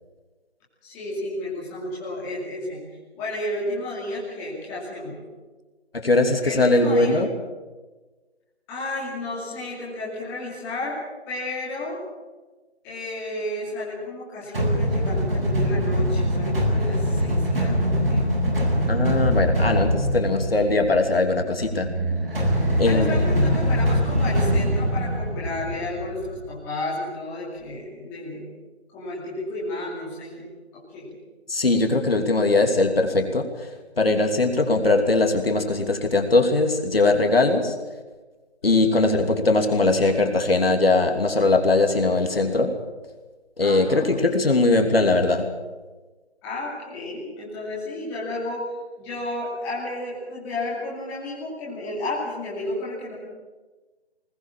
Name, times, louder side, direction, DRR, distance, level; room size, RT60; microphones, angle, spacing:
voice 1, 0.8-2.8 3.1-5.2 6.4-7.2 8.7-11.0 11.3-12.0 12.8-18.3 22.8-28.5 28.9-31.2 38.6-38.8 43.6-44.1 46.4-48.6 49.0-53.1, left 2 dB, 5° left, -7 dB, 2.6 m, -32 dB
voice 2, 5.9-7.3 18.9-21.9 22.8-23.2 31.5-33.5 34.0-37.7 38.6-42.7 43.6-45.5, left 2 dB, 60° left, 4 dB, 3.0 m, -20 dB
sound 1, 14.5-26.4, equal, 60° right, 7.4 m, -23 dB
20.5 x 19.5 x 7.4 m, 1.3 s
figure-of-eight pair, 165°, 33 cm